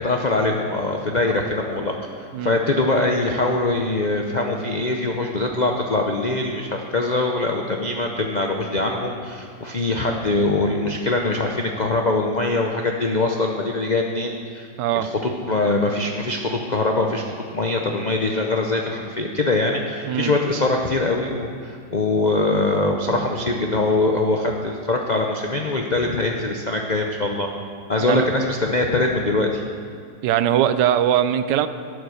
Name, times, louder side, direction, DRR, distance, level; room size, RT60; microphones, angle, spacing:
voice 1, 0.0-14.7 14.9-27.5 27.9-29.6, left 2 dB, 90° left, 2 dB, 0.3 m, -23 dB
voice 2, 14.8-15.1 20.1-20.3 28.1-28.3 30.2-31.7, right 11 dB, 80° right, 12 dB, 1.2 m, -20 dB
12.0 x 8.1 x 6.4 m, 2.2 s
omnidirectional pair, 1.9 m